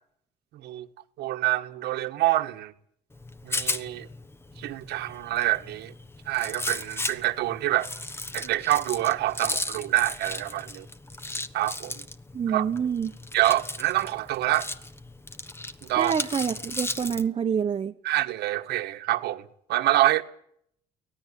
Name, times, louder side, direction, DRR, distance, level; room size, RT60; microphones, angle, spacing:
voice 1, 1.2-2.7 3.4-4.1 4.6-5.9 6.3-7.9 8.3-10.9 11.5-12.0 12.5-12.7 13.3-14.7 15.9-16.1 18.0-20.2, right 15 dB, 80° right, 1.6 m, -26 dB
Rattle, 3.1-17.3, left 2 dB, 15° left, 1.1 m, -36 dB
voice 2, 12.3-13.1 16.0-17.9, right 7 dB, 35° right, 1.1 m, -27 dB
24.0 x 18.0 x 8.4 m
cardioid pair, 110°, 17 cm